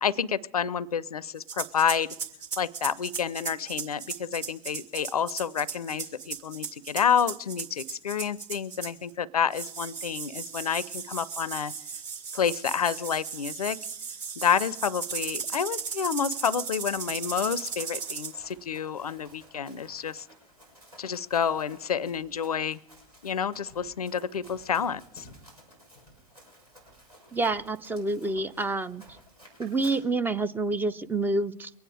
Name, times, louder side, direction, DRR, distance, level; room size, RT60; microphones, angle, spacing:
voice 1, 0.0-2.1 2.6-11.7 12.3-13.8 14.4-20.3 21.0-22.8 23.2-25.3, left 7 dB, 80° left, 23 dB, 0.5 m, -29 dB
sound 1, 1.4-9.1 9.5-18.3, right 6 dB, 40° right, 2.1 m, -36 dB
Run, 15.5-30.0, equal, 85° right, 5.8 m, -54 dB
voice 2, 27.3-29.0 29.6-31.7, right 2 dB, 10° right, 13 dB, 0.4 m, -28 dB
23.0 x 9.4 x 4.8 m, 0.76 s
figure-of-eight pair, 95°, 19 cm